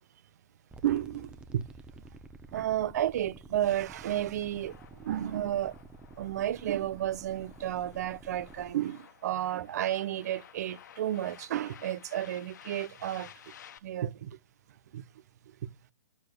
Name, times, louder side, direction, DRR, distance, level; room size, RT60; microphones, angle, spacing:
sound 1, 0.7-8.7, right 3 dB, 10° right, 0.9 m, -51 dB
voice 1, 0.8-1.6 2.5-5.8 6.2-13.5 13.8-14.4 14.9-15.0 15.5-15.6, right 12 dB, 60° right, 0.9 m, -32 dB
sound 2, 4.4-13.8, left 9 dB, 70° left, 1.3 m, -54 dB
11.5 x 7.3 x 6.6 m
hypercardioid pair, 140°, 10 cm